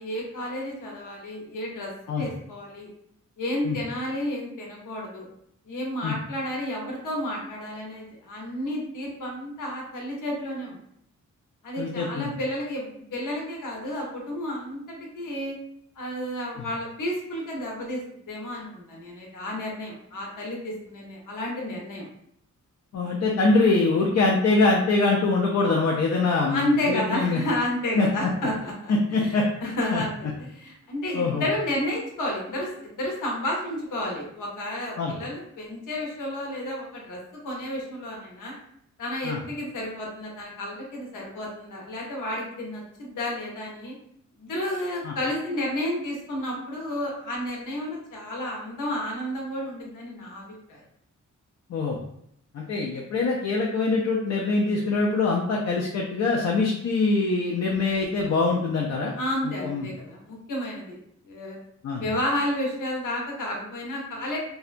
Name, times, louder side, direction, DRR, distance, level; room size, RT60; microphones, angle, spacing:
voice 1, 0.0-2.9 3.4-5.3 5.7-10.8 11.6-15.6 16.0-18.0 18.3-22.1 26.5-29.3 29.6-30.1 30.4-37.2 37.4-38.5 39.0-43.9 44.4-50.8 59.2-61.0 61.2-61.6 62.0-64.4, left 1 dB, 85° left, -2 dB, 0.8 m, -31 dB
voice 2, 11.8-12.3 16.6-16.7 22.9-27.4 28.0-28.1 28.9-29.4 29.9-30.0 31.1-31.5 35.0-35.1 39.2-39.4 45.0-45.1 51.7-52.0 52.5-59.1 59.6-59.9 61.8-62.0, left 3 dB, 55° left, -2 dB, 0.4 m, -23 dB
2.7 x 2.2 x 2.5 m, 0.72 s
wide cardioid pair, 145°, 31 cm